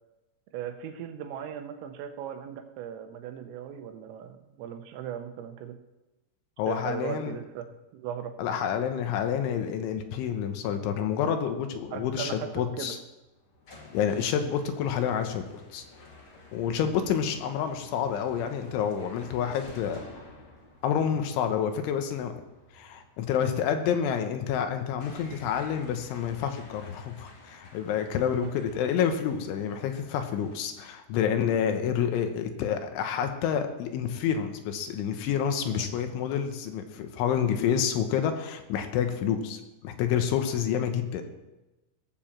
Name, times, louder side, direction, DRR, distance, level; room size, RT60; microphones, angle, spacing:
voice 1, 0.5-5.8 6.7-7.7 7.9-8.3 11.9-12.5 12.8-12.9 16.8-16.9 28.3-28.5 35.6-35.9, right 9 dB, 85° right, 7 dB, 3.7 m, -38 dB
voice 2, 6.6-7.4 8.4-13.0 13.9-15.5 15.7-15.8 16.5-20.0 20.8-22.4 22.7-41.2, left 8 dB, 75° left, 7 dB, 3.3 m, -28 dB
sound 1, 13.2-30.5, left 2 dB, 40° left, 2.0 m, -52 dB
18.0 x 7.1 x 7.3 m, 1.0 s
omnidirectional pair, 5.8 m